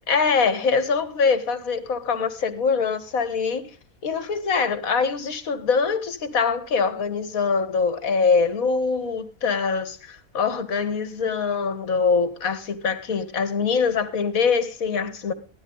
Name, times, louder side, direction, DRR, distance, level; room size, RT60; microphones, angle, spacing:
voice 1, 0.1-3.7 4.0-15.3, left 5 dB, 70° left, 1.8 m, -23 dB
15.5 x 12.5 x 3.9 m
omnidirectional pair, 1.5 m